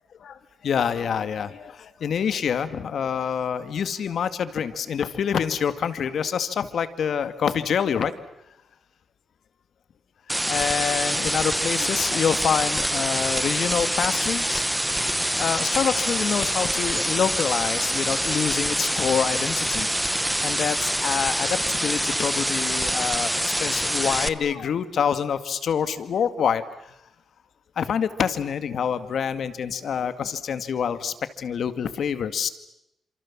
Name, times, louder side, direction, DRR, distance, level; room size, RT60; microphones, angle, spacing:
voice 1, 0.0-8.1 10.5-14.6 15.4-19.9 20.4-26.6 27.8-32.5, left 7 dB, 65° left, 11 dB, 2.0 m, -26 dB
sound 1, 10.3-24.3, equal, 5° right, 1.0 m, -25 dB
29.0 x 27.0 x 7.4 m, 0.85 s
wide cardioid pair, 135°, 0 cm